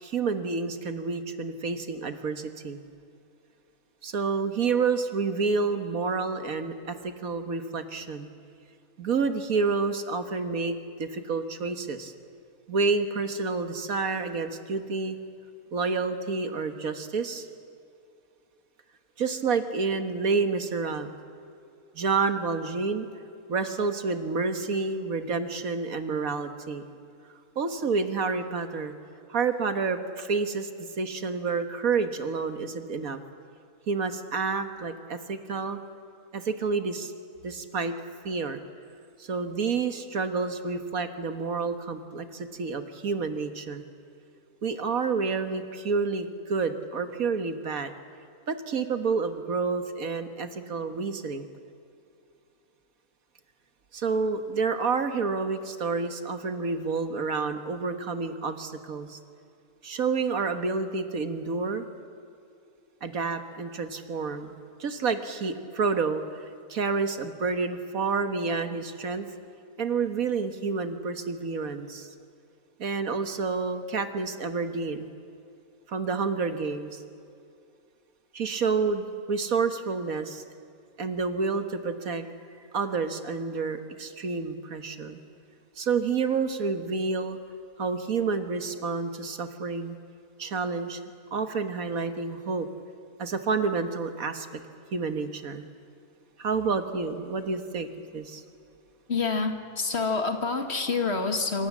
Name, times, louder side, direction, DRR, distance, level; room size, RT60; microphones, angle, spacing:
voice 1, 0.0-2.8 4.0-8.3 9.0-12.1 12.7-15.2 15.7-17.5 19.2-21.1 22.0-23.1 23.5-26.8 27.6-28.9 29.3-30.7 31.0-33.2 33.9-35.8 36.3-37.1 37.4-37.9 38.2-38.6 39.2-43.8 44.6-47.9 48.5-51.5 53.9-59.2 59.8-61.9 63.0-66.2 66.7-69.3 69.8-72.1 72.8-75.1 75.9-77.0 78.3-80.4 81.0-82.3 82.7-85.2 85.8-87.4 87.8-90.0 90.4-91.0 91.3-92.7 93.2-94.5 94.9-95.7 96.4-98.4, right 4 dB, 70° right, 8 dB, 1.9 m, -29 dB
voice 2, 99.1-101.7, left 4 dB, 45° left, 6 dB, 2.0 m, -27 dB
26.5 x 25.0 x 7.4 m, 2.5 s
omnidirectional pair, 1.5 m